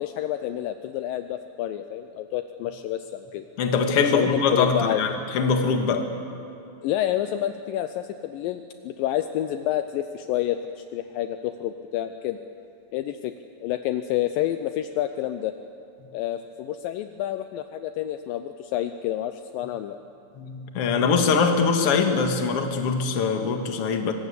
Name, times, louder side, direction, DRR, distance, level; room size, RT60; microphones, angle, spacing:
voice 1, 0.0-3.5 4.0-5.0 6.8-12.4 12.9-13.3 13.6-15.6 16.1-20.0, left 12 dB, 80° left, 9 dB, 2.3 m, -29 dB
voice 2, 3.6-6.1 20.4-24.1, left 5 dB, 50° left, 5 dB, 2.2 m, -23 dB
24.0 x 19.5 x 8.4 m, 2.6 s
omnidirectional pair, 4.3 m